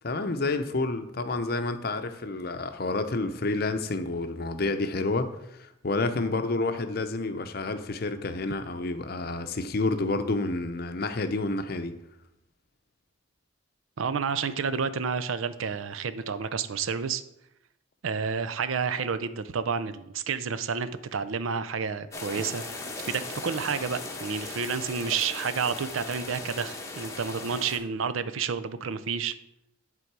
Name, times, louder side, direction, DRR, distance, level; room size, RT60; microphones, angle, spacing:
voice 1, 0.0-11.9, left 2 dB, 50° left, 9 dB, 0.6 m, -29 dB
voice 2, 14.0-17.2 18.0-22.6 23.0-29.3, right 6 dB, 85° right, 13 dB, 0.5 m, -30 dB
sound 1, 22.1-27.8, left 2 dB, 15° left, 0.9 m, -38 dB
11.0 x 3.8 x 4.7 m, 0.83 s
head